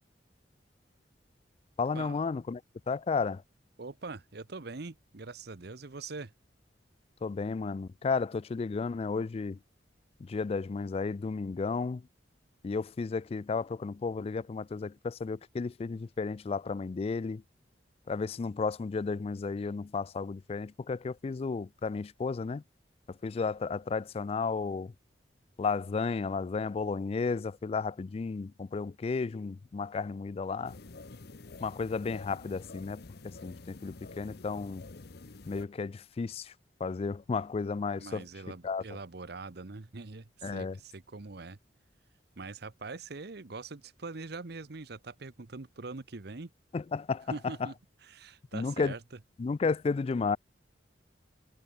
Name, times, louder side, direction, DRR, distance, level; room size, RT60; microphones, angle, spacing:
voice 1, 1.8-2.6 2.9-3.4 7.2-9.6 10.2-12.1 12.6-17.4 18.1-22.6 23.1-24.9 25.6-30.8 31.6-34.8 35.5-36.5 36.8-38.3 38.6-38.8 40.4-40.8 46.7-47.7 48.5-48.9 49.4-50.4, left 4 dB, 35° left, 0.3 m, -33 dB
voice 2, 3.8-6.3 38.0-41.6 42.4-46.5 47.3-47.7 48.1-49.0, right 3 dB, 60° right, 0.9 m, -43 dB
sound 1, 30.6-35.7, left 3 dB, 60° left, 0.9 m, -48 dB
head